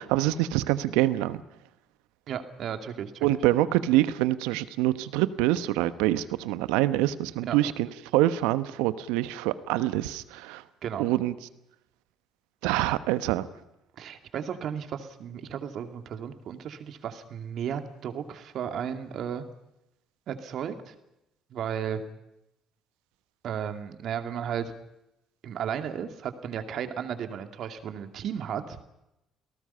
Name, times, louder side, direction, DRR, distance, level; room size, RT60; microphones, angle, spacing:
voice 1, 0.0-1.4 3.2-10.6 11.0-11.3 12.6-13.5, right 15 dB, 75° right, 14 dB, 1.1 m, -25 dB
voice 2, 2.3-3.3 7.5-7.6 10.8-11.1 14.0-19.5 20.3-20.9 21.5-22.0 23.4-24.7 25.4-28.8, right 8 dB, 60° right, 7 dB, 2.4 m, -34 dB
30.0 x 18.5 x 5.7 m, 0.89 s
hypercardioid pair, 55°, 0 cm